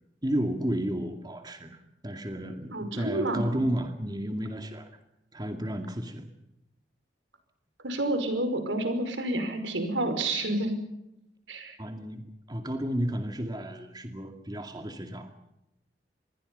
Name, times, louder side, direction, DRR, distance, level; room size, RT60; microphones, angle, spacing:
voice 1, 0.2-4.9 5.3-6.3 11.8-15.4, right 1 dB, 20° right, 6 dB, 2.2 m, -32 dB
voice 2, 2.7-3.5 7.8-10.8 11.5-11.8, right 1 dB, 90° right, 8 dB, 5.3 m, -29 dB
27.5 x 21.5 x 5.5 m, 0.87 s
head